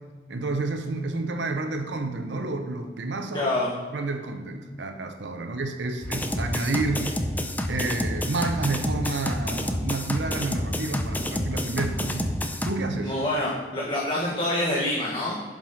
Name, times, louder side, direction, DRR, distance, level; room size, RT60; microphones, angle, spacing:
voice 1, 0.3-3.5 3.9-7.1 7.7-12.3 12.6-13.1, right 3 dB, 80° right, 7 dB, 0.8 m, -30 dB
voice 2, 3.3-3.7 13.0-15.4, left 1 dB, 30° left, -4 dB, 1.3 m, -26 dB
sound 1, 6.0-12.7, left 1 dB, 10° left, 0.5 m, -29 dB
7.6 x 5.4 x 5.6 m, 1.5 s
head